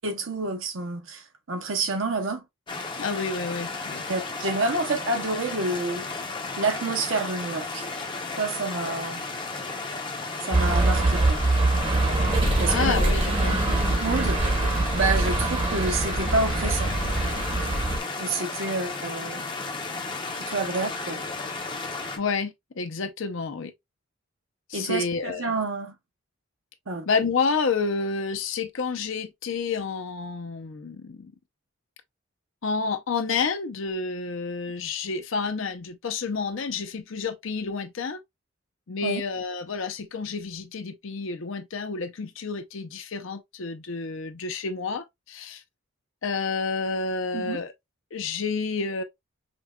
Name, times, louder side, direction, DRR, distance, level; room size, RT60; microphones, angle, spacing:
voice 1, 0.0-2.4 4.1-6.1 6.6-7.9 8.4-9.2 10.4-11.4 12.6-12.9 14.0-14.4 14.9-16.9 18.2-19.4 20.3-21.2 24.7-25.9 26.9-27.1 39.0-39.2 47.3-47.6, right 3 dB, 65° right, 0.8 m, -28 dB
sound 1, 2.7-22.2, left 3 dB, 20° left, 0.6 m, -34 dB
voice 2, 3.0-4.0 12.7-13.6 22.2-23.7 24.7-25.5 27.1-31.3 32.6-38.2 38.9-45.6 46.2-47.7 48.1-49.0, left 4 dB, 60° left, 0.6 m, -29 dB
sound 2, 10.5-18.0, right 2 dB, 25° right, 0.8 m, -24 dB
5.2 x 2.3 x 2.2 m
head